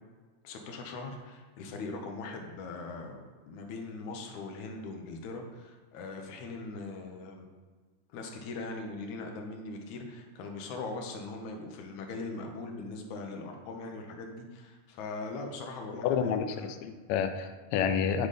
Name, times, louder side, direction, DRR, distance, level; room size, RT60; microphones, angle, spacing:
voice 1, 0.4-7.5 8.1-16.7, left 3 dB, 70° left, 3 dB, 2.2 m, -40 dB
voice 2, 16.0-18.3, left 7 dB, 90° left, 7 dB, 1.5 m, -29 dB
9.5 x 3.9 x 5.0 m, 1.4 s
omnidirectional pair, 3.7 m